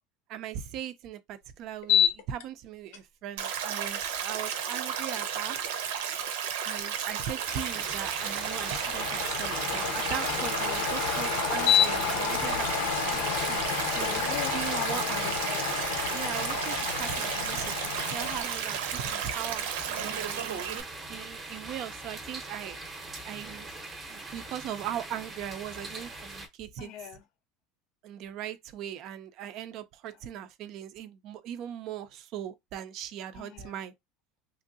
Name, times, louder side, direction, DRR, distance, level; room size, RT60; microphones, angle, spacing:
voice 1, 0.3-5.6 6.6-12.9 13.4-15.4 16.1-17.8 18.1-20.6 21.1-22.8 23.2-23.7 24.1-26.9 28.0-33.9, right 10 dB, 45° right, 0.4 m, -39 dB
sound 1, 1.8-2.4 2.9-3.0 8.2-18.4, left 9 dB, 80° left, 0.7 m, -30 dB
Stream, 3.4-20.8, right 8 dB, 90° right, 0.7 m, -33 dB
sound 2, 7.4-26.5, right 2 dB, 15° right, 0.7 m, -41 dB
voice 2, 13.0-13.4 14.0-15.7 26.8-27.2 33.3-33.8, left 10 dB, 45° left, 0.4 m, -42 dB
3.1 x 2.6 x 2.6 m
cardioid pair, 165°, 0 cm